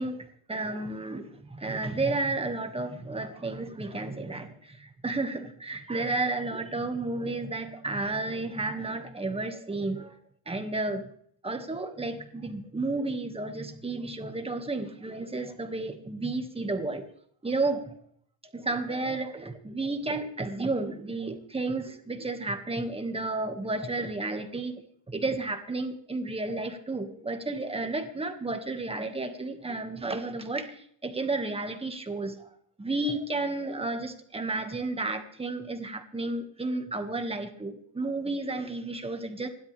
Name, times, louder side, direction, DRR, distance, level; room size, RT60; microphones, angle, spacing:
voice 1, 0.0-10.1 10.5-11.1 11.4-17.1 17.4-17.9 18.5-24.8 25.1-32.5 32.8-39.5, right 2 dB, 10° right, 6 dB, 1.8 m, -32 dB
27.5 x 12.0 x 3.4 m, 0.63 s
cardioid pair, 150°, 50 cm